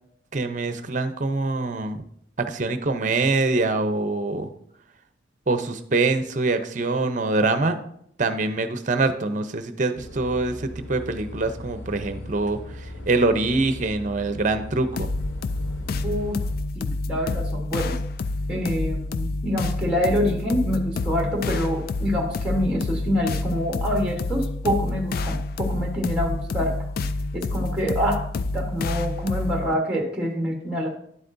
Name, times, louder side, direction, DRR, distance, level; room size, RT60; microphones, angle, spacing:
voice 1, 0.3-2.0 2.4-4.5 5.5-7.8 8.2-12.6 13.1-15.1, right 3 dB, 40° right, 9 dB, 0.6 m, -24 dB
sound 1, 10.0-16.6, left 1 dB, 70° left, 1.2 m, -38 dB
sound 2, 15.0-29.7, left 2 dB, 50° left, 0.3 m, -28 dB
voice 2, 16.0-16.4 16.7-18.0 18.5-26.7 27.3-28.2 28.5-30.9, equal, 5° right, 1 dB, 1.2 m, -26 dB
10.5 x 8.1 x 2.6 m, 0.69 s
head